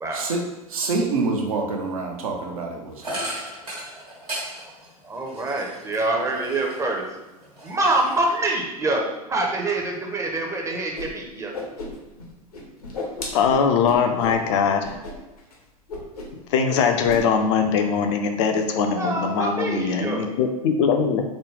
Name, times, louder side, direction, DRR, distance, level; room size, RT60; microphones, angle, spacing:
voice 1, 0.1-3.3, right 3 dB, 65° right, 1 dB, 0.7 m, -27 dB
sound 1, 3.0-7.0 7.4-8.5, right 1 dB, 85° right, 1.3 m, -36 dB
voice 2, 5.0-7.0 7.6-9.0 9.3-11.5 18.9-20.3, right 2 dB, 15° right, 0 dB, 0.6 m, -25 dB
Whoosh swoosh swish, 10.9-11.1 11.3-12.3 12.5-14.4 14.8-15.1 15.4-15.5 15.9-16.4 16.7-17.2, left 2 dB, 75° left, 0.8 m, -34 dB
voice 3, 13.3-14.9 16.5-21.2, left 6 dB, 50° left, 5 dB, 0.5 m, -21 dB
4.0 x 2.2 x 3.2 m, 1.1 s
figure-of-eight pair, 85°, 19 cm